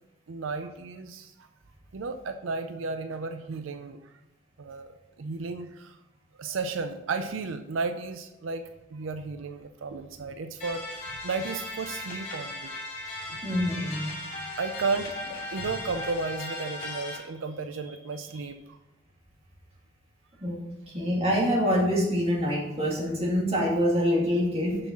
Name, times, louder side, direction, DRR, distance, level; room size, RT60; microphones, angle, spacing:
voice 1, 0.3-1.5 1.9-4.1 4.6-4.9 5.2-6.0 6.4-12.8 13.3-13.4 14.2-15.1 15.5-18.8, right 4 dB, 85° right, 8 dB, 0.5 m, -34 dB
sound 1, 10.6-17.2, left 2 dB, 45° left, 2.5 m, -37 dB
voice 2, 13.4-14.1 20.4-20.5 20.9-24.8, equal, 30° right, -3 dB, 2.2 m, -25 dB
6.8 x 5.5 x 5.8 m, 0.95 s
head